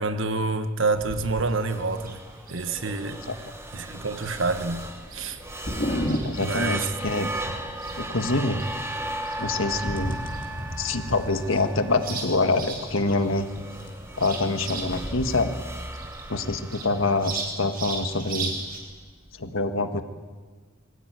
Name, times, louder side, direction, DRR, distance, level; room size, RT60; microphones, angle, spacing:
voice 1, 0.0-2.2 2.5-3.2 3.7-4.8 5.1-5.4 6.4-6.9, right 3 dB, 70° right, 1.4 m, -27 dB
sound 1, 0.9-18.8, right 2 dB, 45° right, 5.5 m, -38 dB
sound 2, 1.7-19.5, right 1 dB, 15° right, 1.5 m, -37 dB
sound 3, 4.3-15.7, equal, 40° left, 2.9 m, -38 dB
voice 2, 6.2-7.3 8.0-8.7 9.4-10.2 10.8-13.5 14.2-15.5 16.3-18.5 19.4-20.0, left 2 dB, 80° left, 1.6 m, -25 dB
23.0 x 18.0 x 9.4 m
head